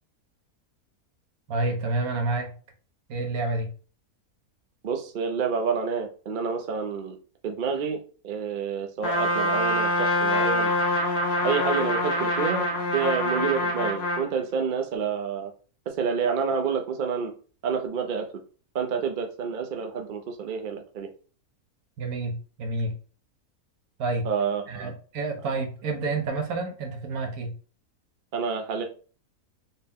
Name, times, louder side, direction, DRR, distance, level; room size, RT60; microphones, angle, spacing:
voice 1, 1.5-2.5 3.1-3.7 22.0-22.9 24.0-24.3 24.7-27.5, right 3 dB, 75° right, 3 dB, 1.3 m, -29 dB
voice 2, 4.8-7.2 7.4-10.7 11.4-12.7 12.9-15.5 15.9-17.3 17.6-18.3 18.7-21.1 24.2-24.9 28.3-28.8, right 6 dB, 55° right, 4 dB, 0.5 m, -28 dB
Trumpet, 9.0-14.3, left 1 dB, 55° left, 0.8 m, -25 dB
4.2 x 2.1 x 3.5 m, 0.38 s
omnidirectional pair, 1.6 m